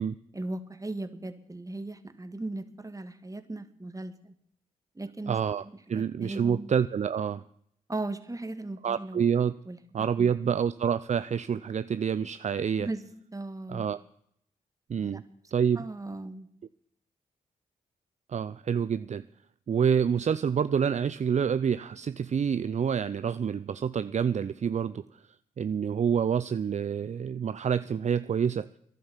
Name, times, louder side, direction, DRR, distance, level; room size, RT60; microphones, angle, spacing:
voice 1, 0.3-4.3 4.9-5.4 5.9-6.7 7.9-9.2 9.6-9.8 10.2-10.5 12.8-13.8 15.0-15.2 15.7-16.5, right 2 dB, 20° right, 9 dB, 1.8 m, -37 dB
voice 2, 5.3-7.4 8.8-9.5 9.9-12.9 13.7-14.0 14.9-15.2 15.5-15.8 18.3-19.2 19.7-25.1 25.6-28.7, right 7 dB, 50° right, 14 dB, 0.5 m, -27 dB
13.0 x 11.0 x 7.3 m, 0.69 s
supercardioid pair, 50°, 15 cm